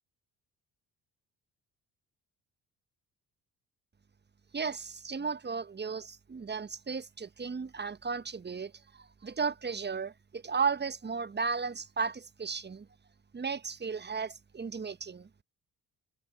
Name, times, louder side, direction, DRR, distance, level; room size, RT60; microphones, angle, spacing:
voice 1, 4.5-12.9 13.3-15.3, right 5 dB, 20° right, 1.3 m, -35 dB
figure-of-eight pair, 40°, 48 cm